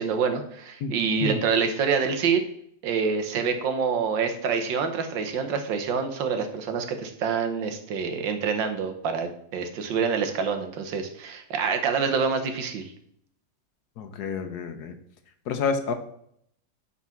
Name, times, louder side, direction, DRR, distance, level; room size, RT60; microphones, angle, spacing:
voice 1, 0.0-2.4 2.8-12.9, right 6 dB, 85° right, 7 dB, 1.7 m, -26 dB
voice 2, 14.0-14.9 15.5-15.9, left 5 dB, 65° left, 8 dB, 1.2 m, -28 dB
8.6 x 4.2 x 5.8 m, 0.69 s
omnidirectional pair, 2.0 m